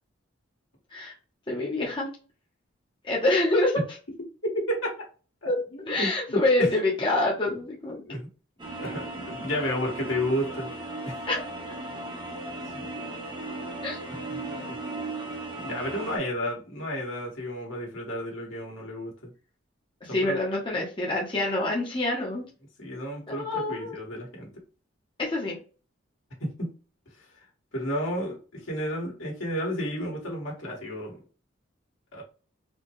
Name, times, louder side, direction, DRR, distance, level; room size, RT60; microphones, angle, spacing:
voice 1, 1.5-2.1 3.0-3.8 5.5-5.6 5.9-8.0 11.3-11.4 13.8-14.0 20.0-22.4 23.3-24.0 25.2-25.6, left 2 dB, 25° left, -3 dB, 0.8 m, -26 dB
voice 2, 4.5-4.9 5.4-6.7 7.4-7.5 7.9-8.3 8.8-10.7 11.1-11.2 12.6-12.8 14.3-14.8 15.6-19.3 20.1-20.4 22.8-24.5 26.4-26.7 27.7-31.2 32.1-32.2, equal, 75° left, -2 dB, 1.8 m, -32 dB
sound 1, 8.6-16.2, right 2 dB, 20° right, 0.8 m, -36 dB
4.3 x 2.3 x 3.1 m, 0.36 s
head